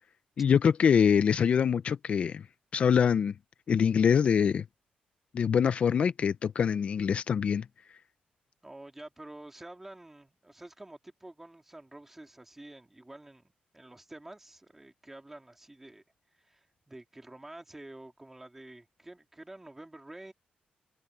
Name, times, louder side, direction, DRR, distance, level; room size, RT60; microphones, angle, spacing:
voice 1, 0.4-2.5 2.7-3.3 3.7-4.6 5.3-7.7, left 7 dB, 45° left, 0.4 m, -24 dB
voice 2, 8.6-13.5 13.7-16.0 16.3-20.3, right 1 dB, 10° right, 2.6 m, -49 dB
wide cardioid pair, 165°, 3 cm